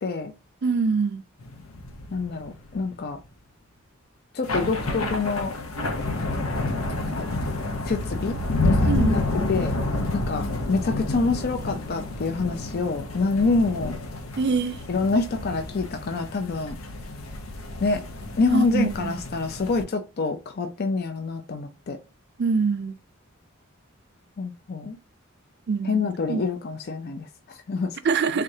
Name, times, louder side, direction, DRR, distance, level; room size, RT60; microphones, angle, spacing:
voice 1, 0.0-0.3 2.1-3.2 4.3-5.5 6.2-7.4 7.9-8.4 8.6-9.2 9.5-9.7 10.1-14.0 14.9-16.8 17.8-18.0 18.4-22.0 24.4-25.0 25.8-28.0, left 4 dB, 50° left, 0.5 m, -27 dB
voice 2, 0.6-1.2 8.9-9.2 14.4-14.8 18.5-19.1 22.4-22.9 25.7-26.4 28.0-28.4, right 4 dB, 55° right, 0.5 m, -24 dB
sound 1, 1.4-3.1 4.4-19.8, left 2 dB, 90° left, 0.9 m, -29 dB
3.7 x 3.3 x 2.7 m
head